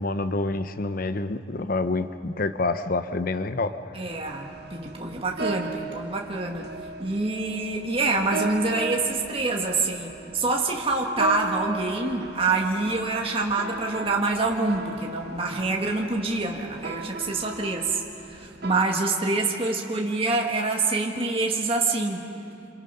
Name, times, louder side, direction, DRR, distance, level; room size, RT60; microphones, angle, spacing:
voice 1, 0.0-3.8, left 3 dB, 50° left, 10 dB, 0.7 m, -27 dB
voice 2, 3.9-6.7 7.0-18.0 18.3-22.3, right 3 dB, 30° right, 0 dB, 1.6 m, -26 dB
sound 1, 4.1-18.7, right 3 dB, 60° right, 1.1 m, -37 dB
27.0 x 26.5 x 5.6 m, 2.7 s
head